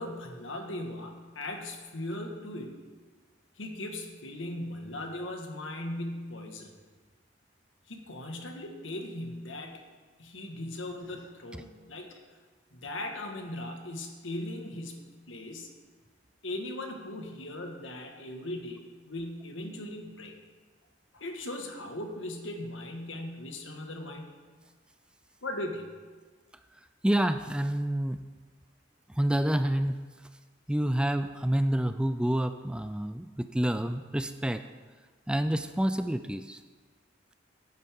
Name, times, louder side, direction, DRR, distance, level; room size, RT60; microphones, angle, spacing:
voice 1, 0.0-2.8 3.6-6.7 7.9-9.8 10.2-12.2 12.7-15.7 16.4-20.3 21.1-24.4 25.4-25.9, left 1 dB, 80° left, 3 dB, 1.6 m, -38 dB
voice 2, 27.0-28.2 29.2-30.0 30.7-34.6 35.3-36.6, right 1 dB, 5° right, 10 dB, 0.3 m, -28 dB
16.5 x 9.6 x 3.6 m, 1.4 s
head